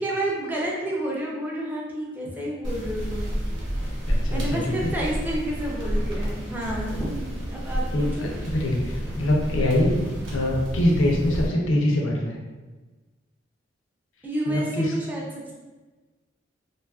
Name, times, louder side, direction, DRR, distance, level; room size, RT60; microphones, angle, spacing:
voice 1, 0.0-3.4 3.9-8.3 14.2-15.5, right 1 dB, 10° right, -4 dB, 0.4 m, -30 dB
sound 1, 2.6-11.5, equal, 70° right, 0.9 m, -30 dB
voice 2, 4.1-4.9 7.9-10.0 10.3-12.4 14.5-14.9, left 1 dB, 85° left, -1 dB, 0.5 m, -24 dB
2.6 x 2.4 x 2.3 m, 1.3 s
head